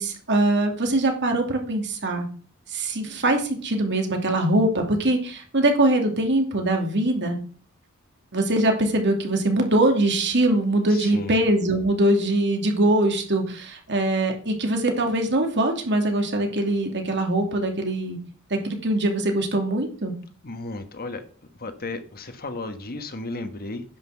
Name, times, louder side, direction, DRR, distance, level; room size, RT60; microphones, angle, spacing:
voice 1, 0.0-2.3 2.7-7.4 8.3-18.2 18.5-20.1, right 1 dB, 55° right, 3 dB, 2.7 m, -22 dB
voice 2, 10.9-11.4 20.4-21.2 21.6-23.8, left 2 dB, 45° left, 8 dB, 1.4 m, -34 dB
10.5 x 6.0 x 7.4 m, 0.42 s
head